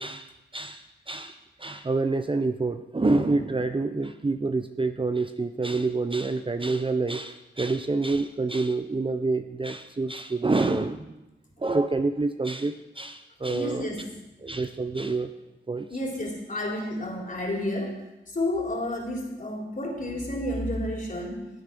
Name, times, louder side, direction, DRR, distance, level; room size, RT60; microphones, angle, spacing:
voice 1, 0.0-11.1 11.6-13.9 14.4-15.3 15.7-15.9, right 3 dB, 25° right, 8 dB, 0.7 m, -27 dB
voice 2, 13.5-14.1 15.9-18.0 18.3-21.5, left 1 dB, 40° left, -1 dB, 3.9 m, -31 dB
16.5 x 8.3 x 5.3 m, 0.95 s
cardioid pair, 70°, 21 cm